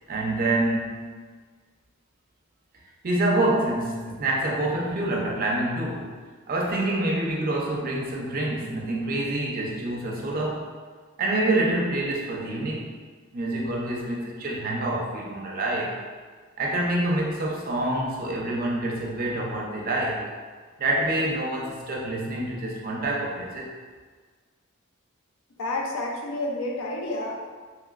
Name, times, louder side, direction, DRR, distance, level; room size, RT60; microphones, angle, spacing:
voice 1, 0.1-1.0 3.0-6.2 6.5-10.7 11.2-12.9 13.3-16.0 16.6-20.3 20.8-23.7, right 1 dB, 45° right, -2 dB, 0.5 m, -26 dB
voice 2, 25.6-27.3, left 2 dB, 75° left, 0 dB, 0.5 m, -29 dB
2.9 x 2.9 x 2.4 m, 1.5 s
head